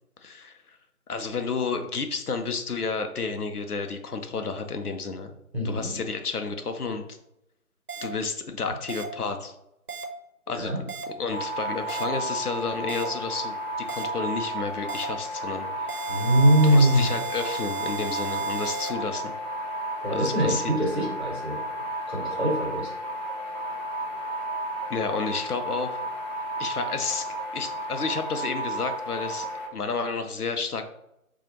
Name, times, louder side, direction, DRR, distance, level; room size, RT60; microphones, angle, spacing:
voice 1, 0.2-0.8 1.1-5.4 5.6-7.2 8.0-9.5 10.5-10.9 11.2-13.5 13.9-15.9 16.6-19.3 20.1-20.8 24.9-26.0 26.6-30.8, left 4 dB, 80° left, 7 dB, 0.6 m, -31 dB
voice 2, 5.5-6.0 10.5-10.8 16.1-17.1 20.0-21.6 22.1-22.9, right 1 dB, 45° right, -3 dB, 1.1 m, -22 dB
sound 1, 7.9-8.0 8.9-9.0 9.9-10.0 10.9-11.0 11.9-12.0 12.9-13.0 13.9-14.0 14.9-15.0 15.9-18.9, right 4 dB, 75° right, 0.8 m, -35 dB
sound 2, 11.3-29.7, right 1 dB, 45° left, 1.2 m, -33 dB
3.8 x 2.4 x 2.9 m, 0.82 s
figure-of-eight pair, 170°, 45 cm